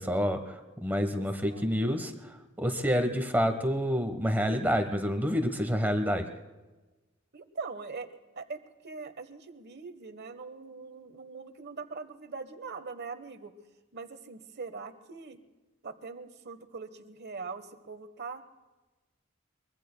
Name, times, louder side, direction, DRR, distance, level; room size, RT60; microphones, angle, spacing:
voice 1, 0.0-6.3, equal, 10° right, 7 dB, 1.1 m, -28 dB
voice 2, 1.2-1.8 7.3-8.1 8.3-13.5 13.9-15.4 15.8-18.4, right 4 dB, 55° right, 9 dB, 1.2 m, -42 dB
24.0 x 23.0 x 2.2 m, 1.2 s
head